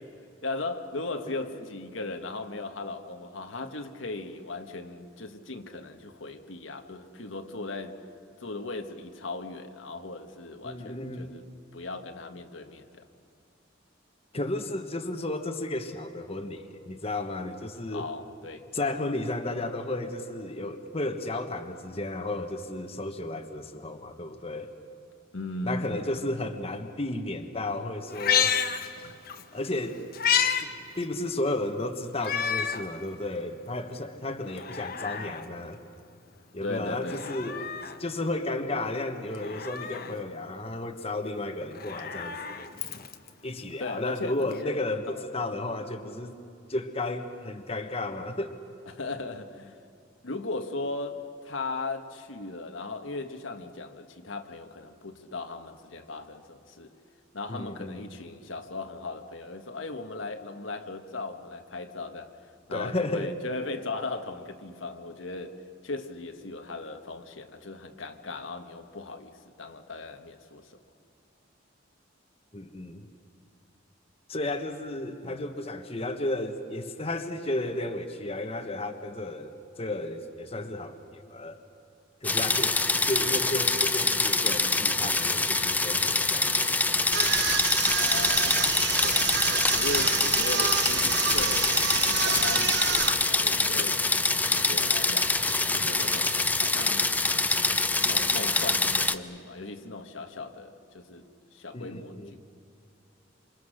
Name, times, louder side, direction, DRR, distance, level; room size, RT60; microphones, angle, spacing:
voice 1, 0.4-8.0 8.4-11.5 11.7-13.1 17.9-18.7 25.3-26.2 36.6-37.6 43.7-44.8 45.1-45.2 48.9-49.8 50.2-56.9 57.3-62.4 62.7-70.8 75.2-75.4 87.7-94.0 94.5-95.4 95.7-97.1 98.0-102.4, left 3 dB, 85° left, 1.6 m, -38 dB
voice 2, 10.6-11.4 14.3-18.1 18.7-24.7 25.6-28.6 29.5-30.1 30.6-35.8 36.5-37.7 38.0-42.7 43.4-46.4 46.7-48.5 57.5-58.0 62.7-63.3 72.5-73.1 74.3-81.6 82.2-82.8 83.1-86.5 101.7-102.3, left 2 dB, 30° left, 1.3 m, -33 dB
Meow, 28.1-29.4 29.8-30.6 31.0-31.1 32.2-32.9 33.4-33.5 34.4-35.4 37.0-38.0 39.3-40.2 41.6-43.3 44.5-44.6, left 8 dB, 50° left, 1.3 m, -30 dB
sound 1, 82.2-99.1, left 3 dB, 10° left, 0.6 m, -25 dB
sound 2, 87.1-93.1, right 8 dB, 60° right, 1.0 m, -29 dB
27.5 x 27.0 x 6.6 m
head